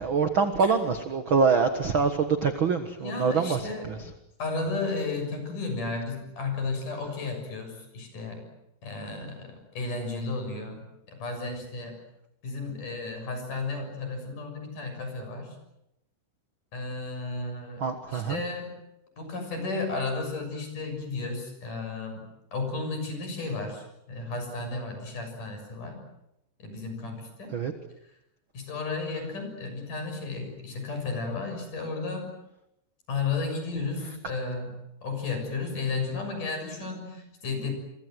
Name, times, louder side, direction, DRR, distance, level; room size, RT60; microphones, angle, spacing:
voice 1, 0.0-4.0 17.8-18.4 27.5-27.7, right 5 dB, 70° right, 8 dB, 1.1 m, -25 dB
voice 2, 3.0-4.0 4.4-8.4 8.8-10.8 11.1-12.0 12.4-15.6 16.7-18.8 19.2-26.0 26.6-27.5 28.5-32.3 33.1-37.7, left 3 dB, 50° left, 5 dB, 8.1 m, -33 dB
27.5 x 24.0 x 7.9 m, 0.84 s
omnidirectional pair, 4.8 m